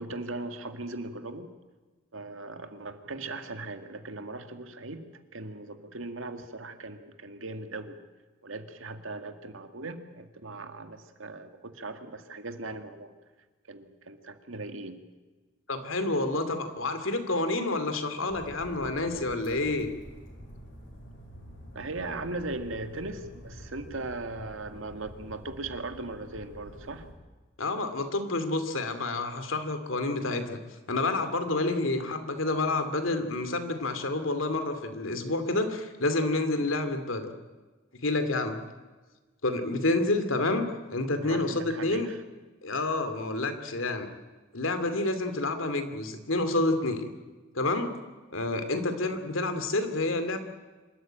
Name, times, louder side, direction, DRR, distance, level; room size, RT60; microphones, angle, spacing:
voice 1, 0.0-1.5 2.1-8.0 8.4-13.1 13.7-15.0 21.7-27.1 41.1-42.2, right 2 dB, 85° right, 8 dB, 1.9 m, -39 dB
voice 2, 15.7-19.9 27.6-30.6 30.9-37.3 38.0-38.6 39.4-42.1 42.6-44.1 44.5-47.0 47.5-47.9 48.3-50.4, left 2 dB, 90° left, 8 dB, 2.5 m, -29 dB
sound 1, 18.3-27.1, equal, 70° left, 5.6 m, -47 dB
26.0 x 13.5 x 9.0 m, 1.3 s
head